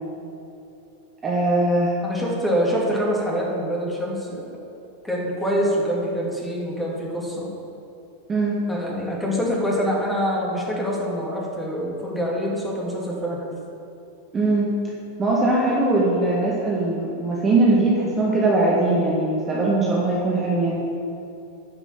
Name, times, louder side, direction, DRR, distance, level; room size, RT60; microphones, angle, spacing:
voice 1, 1.2-1.9 8.3-8.6 14.3-14.7 15.2-20.9, right 2 dB, 20° right, -5 dB, 1.6 m, -21 dB
voice 2, 2.0-4.5 5.0-7.5 8.7-13.4, equal, 5° left, -4 dB, 2.6 m, -25 dB
9.5 x 6.0 x 7.4 m, 2.7 s
figure-of-eight pair, 90°, 0 cm